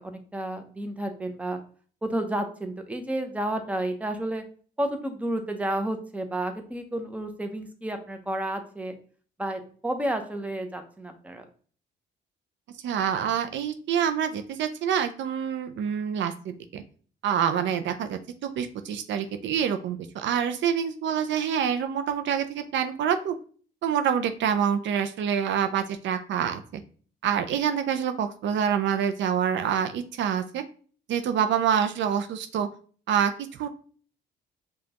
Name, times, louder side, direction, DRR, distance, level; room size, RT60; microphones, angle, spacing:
voice 1, 0.0-1.6 2.0-4.4 4.8-8.9 9.4-11.4, right 1 dB, 5° right, 6 dB, 0.7 m, -31 dB
voice 2, 12.8-16.8 17.2-23.4 23.8-26.8 27.2-30.6 31.1-32.7 33.1-33.7, right 8 dB, 70° right, 8 dB, 0.4 m, -26 dB
5.0 x 2.3 x 2.8 m, 0.43 s
cardioid pair, 90°, 20 cm